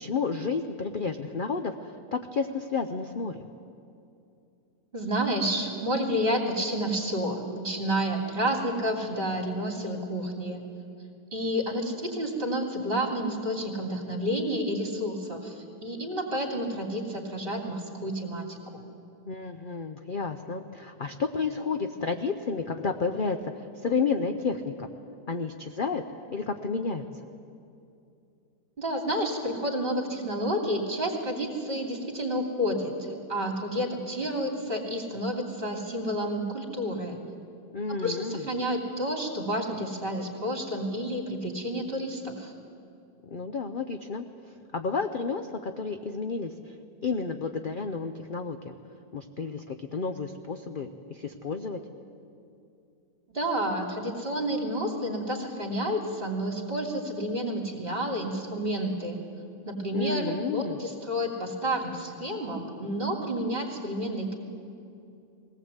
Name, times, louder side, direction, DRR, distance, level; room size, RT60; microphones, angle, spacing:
voice 1, 0.0-3.5 19.3-24.9 25.3-26.0 26.3-27.1 37.7-38.5 43.2-44.3 44.7-46.7 47.0-48.7 49.1-51.8 59.9-60.8, left 4 dB, 45° left, 7 dB, 0.7 m, -31 dB
voice 2, 4.9-10.6 11.3-18.8 28.8-37.2 37.9-42.5 53.3-59.2 59.7-64.4, equal, 35° right, 1 dB, 3.0 m, -30 dB
20.0 x 18.0 x 8.1 m, 2.6 s
omnidirectional pair, 1.7 m